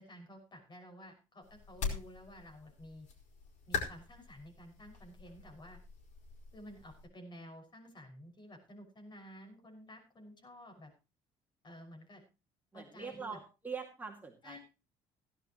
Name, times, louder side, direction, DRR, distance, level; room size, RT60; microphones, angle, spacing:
voice 1, 0.0-3.1 3.7-5.8 6.5-10.9 11.6-12.2 12.7-13.4 14.4-14.6, equal, 35° left, 4 dB, 6.1 m, -52 dB
sound 1, 1.4-7.1, left 5 dB, 60° left, 5.2 m, -43 dB
voice 2, 12.7-14.6, right 5 dB, 15° right, 0 dB, 2.3 m, -43 dB
17.0 x 12.0 x 3.1 m, 0.29 s
cardioid pair, 115°, 13 cm